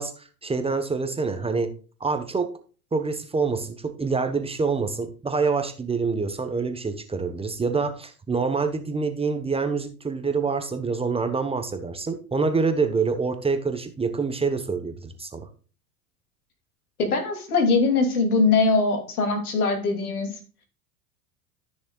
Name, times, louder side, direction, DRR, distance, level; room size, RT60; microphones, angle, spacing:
voice 1, 0.0-1.7 2.0-2.5 2.9-15.5, right 4 dB, 15° right, 8 dB, 1.1 m, -26 dB
voice 2, 17.0-20.4, left 4 dB, 80° left, 4 dB, 2.9 m, -22 dB
14.0 x 6.4 x 2.4 m, 0.37 s
hypercardioid pair, 90°, 44 cm